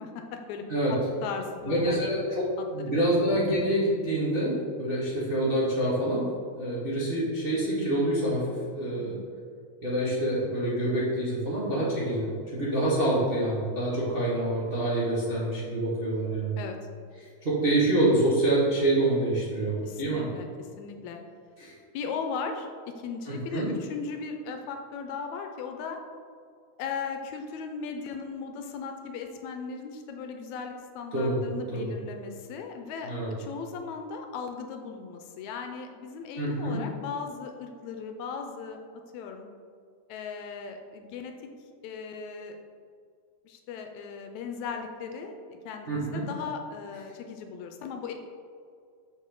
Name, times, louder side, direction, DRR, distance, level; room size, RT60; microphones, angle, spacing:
voice 1, 0.0-2.1 2.6-3.0 9.0-9.3 16.6-16.8 19.8-21.2 21.9-26.0 26.8-33.1 33.4-38.8 39.1-39.5 40.1-41.3 41.8-42.6 43.5-45.3 45.7-48.1, left 5 dB, 80° left, 4 dB, 1.9 m, -37 dB
voice 2, 1.7-6.2 6.6-8.4 8.7-9.1 9.8-16.6 17.4-20.2 21.6-21.7 23.3-23.7 31.1-31.4 31.7-31.9 33.0-33.3 36.4-36.8 45.9-46.2, right 1 dB, 60° right, -8 dB, 0.5 m, -26 dB
6.7 x 6.3 x 3.8 m, 2.2 s
omnidirectional pair, 3.5 m